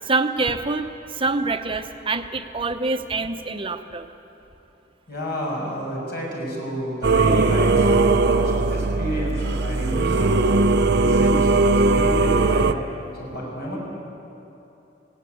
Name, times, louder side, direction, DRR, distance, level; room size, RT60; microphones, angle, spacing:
voice 1, 0.0-4.1, right 3 dB, 30° right, 7 dB, 0.9 m, -26 dB
voice 2, 5.1-12.8 13.2-13.8, equal, 60° left, -3 dB, 6.7 m, -30 dB
Singing / Musical instrument, 7.0-12.7, right 3 dB, 60° right, 0.7 m, -19 dB
18.0 x 17.5 x 9.4 m, 2.9 s
head